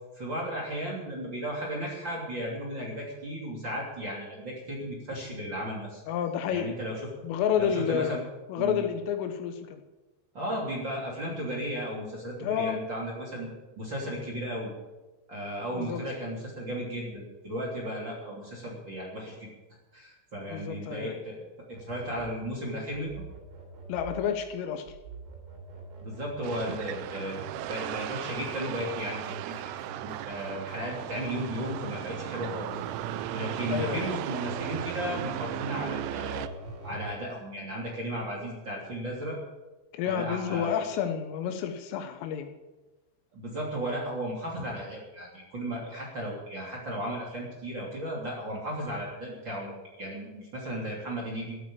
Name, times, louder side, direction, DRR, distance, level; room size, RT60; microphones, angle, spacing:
voice 1, 0.1-6.0 6.5-7.0 7.6-8.2 8.6-8.9 10.3-13.5 13.8-14.7 15.3-19.5 19.9-21.4 21.7-23.2 26.0-27.4 27.7-29.6 30.0-32.7 33.3-36.5 36.8-39.4 40.0-40.8 43.3-51.6, equal, 30° right, -3 dB, 2.9 m, -35 dB
voice 2, 6.1-6.7 7.2-8.2 8.5-9.8 12.4-12.8 15.7-16.0 20.5-21.2 23.9-24.9 33.7-34.1 39.9-42.5, left 8 dB, 80° left, 7 dB, 3.7 m, -30 dB
sound 1, 21.7-37.1, right 3 dB, 65° right, 5.5 m, -44 dB
sound 2, 26.4-36.5, right 14 dB, 80° right, 2.9 m, -36 dB
14.5 x 9.0 x 8.8 m, 1.1 s
omnidirectional pair, 5.9 m